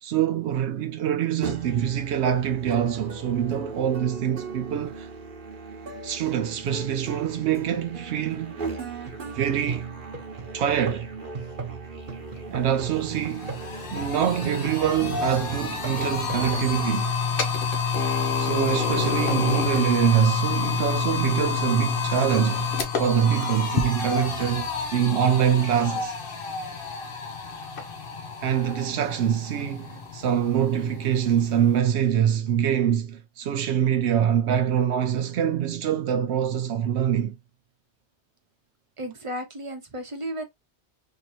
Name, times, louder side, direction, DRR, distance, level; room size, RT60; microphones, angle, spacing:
voice 1, 0.0-5.1 6.0-8.5 9.3-9.9 10.5-11.1 12.5-13.6 13.9-17.1 18.4-26.1 28.4-37.4, right 9 dB, 80° right, 0.8 m, -24 dB
Musical instrument, 1.4-16.9, right 4 dB, 50° right, 1.1 m, -37 dB
sound 1, 12.4-12.5 12.8-31.8, left 5 dB, 55° left, 0.9 m, -29 dB
voice 2, 39.0-40.5, equal, 30° right, 0.9 m, -34 dB
3.7 x 2.9 x 2.8 m
omnidirectional pair, 1.1 m